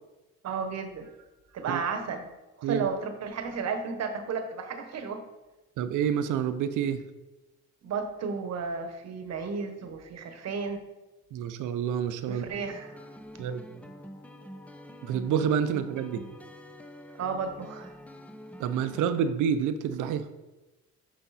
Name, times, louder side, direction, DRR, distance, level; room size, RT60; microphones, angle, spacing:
voice 1, 0.4-1.1 1.5-2.3 2.6-5.2 7.8-10.8 12.3-12.9 17.2-17.9, right 5 dB, 60° right, 7 dB, 1.0 m, -33 dB
voice 2, 5.8-7.0 11.3-12.4 13.4-13.6 15.0-16.2 18.6-20.3, right 8 dB, 85° right, 11 dB, 0.6 m, -28 dB
sound 1, 12.5-19.3, equal, 5° left, 0.5 m, -46 dB
6.1 x 5.0 x 4.0 m, 1.1 s
cardioid pair, 90°, 30 cm